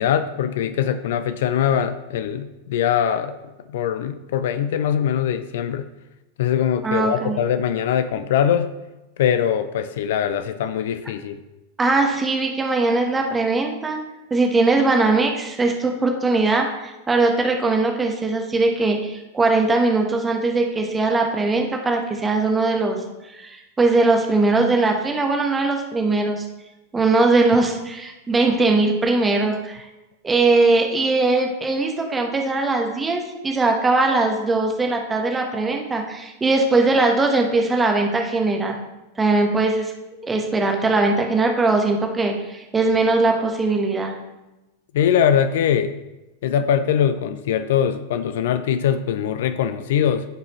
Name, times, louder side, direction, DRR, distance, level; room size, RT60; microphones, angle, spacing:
voice 1, 0.0-3.3 3.7-5.8 6.4-8.7 9.2-11.4 44.9-45.9 46.4-50.3, left 9 dB, 55° left, 11 dB, 0.4 m, -22 dB
voice 2, 6.8-7.4 11.8-14.0 14.3-23.0 23.4-26.4 26.9-29.9 30.2-38.8 39.2-39.9 40.2-44.1, right 3 dB, 15° right, 2 dB, 1.2 m, -20 dB
14.0 x 4.8 x 3.0 m, 1.0 s
figure-of-eight pair, 90°, 0 cm